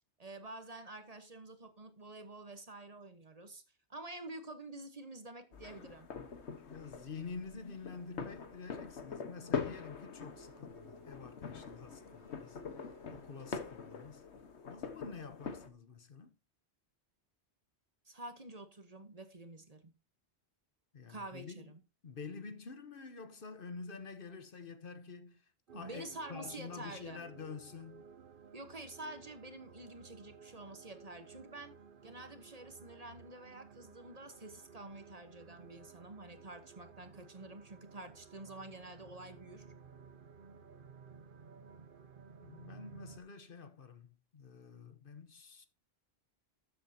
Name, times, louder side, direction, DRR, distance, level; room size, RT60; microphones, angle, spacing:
voice 1, 0.2-3.6 3.9-6.1 18.0-19.9 21.1-21.8 25.7-27.2 28.5-31.8 32.0-39.6, right 2 dB, 35° right, 1.2 m, -48 dB
sound 1, 5.5-15.7, left 6 dB, 85° left, 1.5 m, -43 dB
voice 2, 6.7-14.2 14.7-16.3 20.9-21.7 22.0-28.0 42.4-45.7, left 5 dB, 55° left, 1.1 m, -48 dB
Race car auto racing / Accelerating revving vroom, 10.1-14.8, right 2 dB, 25° left, 5.3 m, -63 dB
sound 2, 25.7-43.2, right 6 dB, 55° right, 1.0 m, -56 dB
13.0 x 7.8 x 2.8 m
omnidirectional pair, 1.1 m